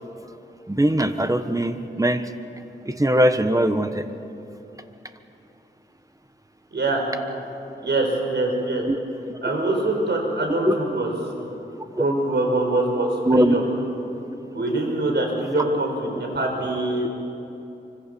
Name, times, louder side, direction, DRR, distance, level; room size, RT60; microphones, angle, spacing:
voice 1, 0.7-2.2 2.8-4.0 8.9-9.0 10.7-10.8 13.3-13.5, right 1 dB, 20° right, 9 dB, 1.4 m, -20 dB
voice 2, 6.7-7.0 7.8-8.8 9.4-11.1 12.0-13.6 14.5-17.1, right 2 dB, 70° right, 1 dB, 5.7 m, -24 dB
25.5 x 24.5 x 7.1 m, 2.9 s
wide cardioid pair, 65°, 19 cm